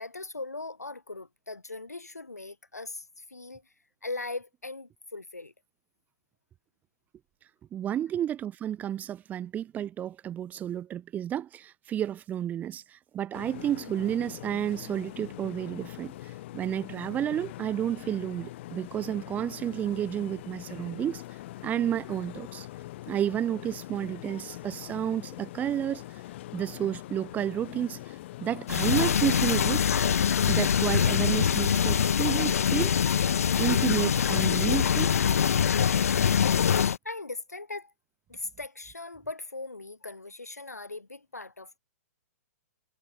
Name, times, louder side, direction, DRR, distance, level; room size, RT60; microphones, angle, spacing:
voice 1, 0.0-3.6 4.0-5.5 36.8-37.9 38.3-41.8, left 3 dB, 90° left, 4.2 m, -39 dB
voice 2, 7.7-21.2 21.6-22.7 23.1-26.0 26.5-29.8 30.5-33.0 33.6-35.2, right 10 dB, 20° right, 0.7 m, -31 dB
sound 1, 13.3-31.6, left 16 dB, 50° left, 4.7 m, -43 dB
sound 2, 28.7-37.0, left 8 dB, 70° left, 0.8 m, -24 dB
figure-of-eight pair, 115°, 8 cm